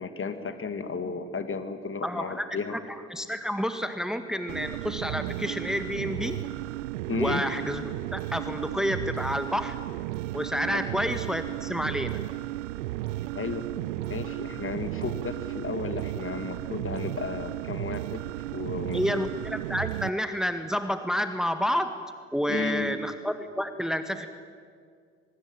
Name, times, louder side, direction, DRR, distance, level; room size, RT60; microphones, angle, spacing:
voice 1, 0.0-2.7 7.1-7.4 10.7-10.8 13.3-13.6 14.1-18.3 18.5-19.2 22.5-22.9, left 4 dB, 35° left, 9 dB, 2.6 m, -33 dB
voice 2, 2.0-2.8 3.1-6.4 7.2-7.8 8.1-9.8 10.3-12.2 18.9-22.0 22.3-24.3, equal, ahead, 8 dB, 1.8 m, -29 dB
sound 1, 4.5-20.1, right 17 dB, 75° right, 0.6 m, -34 dB
24.0 x 23.0 x 9.1 m, 2.1 s
figure-of-eight pair, 50°, 36 cm